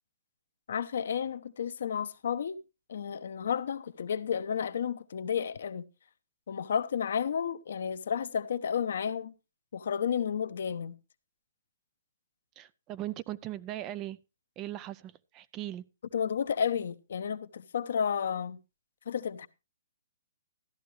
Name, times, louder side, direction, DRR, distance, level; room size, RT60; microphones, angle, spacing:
voice 1, 0.7-2.6 2.9-5.9 6.5-9.3 9.7-11.0 16.1-18.6 19.1-19.5, left 7 dB, 70° left, 0.9 m, -32 dB
voice 2, 12.6-14.2 14.6-15.8, right 14 dB, 25° right, 0.5 m, -39 dB
14.0 x 11.0 x 3.2 m
hypercardioid pair, 140°, 0 cm